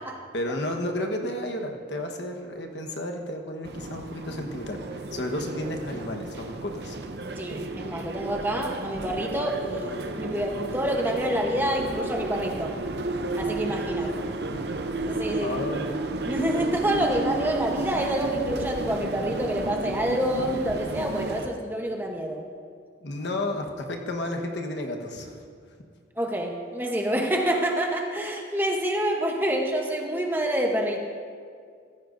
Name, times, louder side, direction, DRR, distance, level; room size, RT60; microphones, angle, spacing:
voice 1, 0.3-7.0 14.0-14.1 15.4-16.0 23.0-25.4, left 1 dB, 70° left, 3 dB, 1.2 m, -32 dB
sound 1, 3.6-21.5, right 2 dB, 60° right, 0.6 m, -32 dB
voice 2, 7.4-12.8 13.4-14.1 15.1-15.5 16.2-22.4 26.2-31.0, right 1 dB, 10° right, 1 dB, 0.9 m, -27 dB
15.0 x 14.5 x 2.6 m, 2.2 s
head